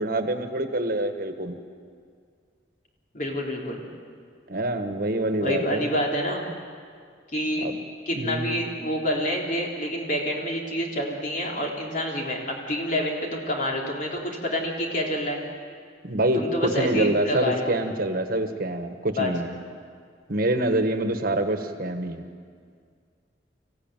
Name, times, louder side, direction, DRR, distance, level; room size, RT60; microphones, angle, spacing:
voice 1, 0.0-1.6 4.5-5.9 7.6-7.7 8.1-8.6 16.0-19.6 20.3-22.3, right 1 dB, 55° right, 7 dB, 1.5 m, -26 dB
voice 2, 3.1-3.9 5.4-6.5 7.3-7.7 8.0-15.4 16.3-17.7 19.1-19.3, equal, 50° left, -1 dB, 3.4 m, -28 dB
25.0 x 15.5 x 9.1 m, 2.1 s
head